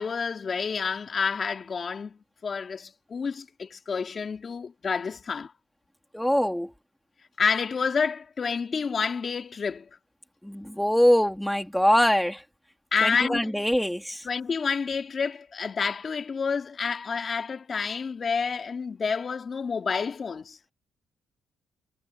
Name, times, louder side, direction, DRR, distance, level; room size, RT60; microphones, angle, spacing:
voice 1, 0.0-5.5 7.4-9.9 12.9-13.5 14.2-20.6, left 5 dB, 40° left, 3.2 m, -29 dB
voice 2, 6.1-6.7 10.4-12.4 13.0-14.3, equal, 5° left, 3.0 m, -23 dB
cardioid pair, 90°, 0 cm